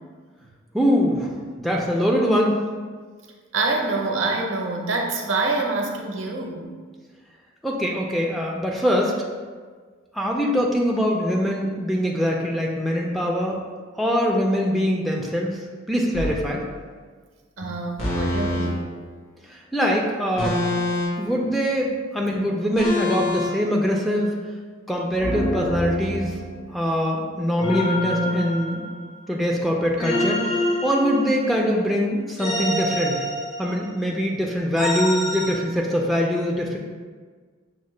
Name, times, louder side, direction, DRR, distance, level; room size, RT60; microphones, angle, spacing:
voice 1, 0.7-1.3 1.6-2.6 7.6-9.1 10.1-13.6 14.0-15.6 15.9-16.6 19.5-20.6 21.2-24.3 24.9-26.3 26.7-28.8 29.3-33.2 33.6-36.8, equal, ahead, -2 dB, 0.3 m, -23 dB
voice 2, 3.5-6.7 17.6-18.8 22.3-22.4, right 3 dB, 70° right, 0 dB, 0.7 m, -26 dB
sound 1, 16.1-16.4 18.0-18.7 20.4-21.3 22.8-23.5 25.2-26.6 27.6-29.2 30.0-31.6 32.4-33.9 34.8-35.5, left 1 dB, 85° left, 1.2 m, -26 dB
6.2 x 2.1 x 3.1 m, 1.6 s
head